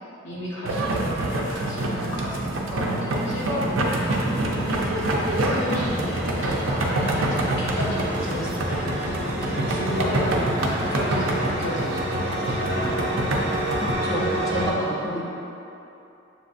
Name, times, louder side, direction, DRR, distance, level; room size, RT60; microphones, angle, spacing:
voice 1, 0.2-13.0, equal, 65° left, -9 dB, 1.1 m, -32 dB
sound 1, 0.7-13.9, right 1 dB, 75° right, 0.5 m, -26 dB
sound 2, 3.2-14.7, right 1 dB, 55° right, 0.8 m, -30 dB
voice 2, 13.7-15.2, right 1 dB, 15° left, -8 dB, 0.5 m, -29 dB
7.0 x 2.6 x 2.5 m, 2.8 s
head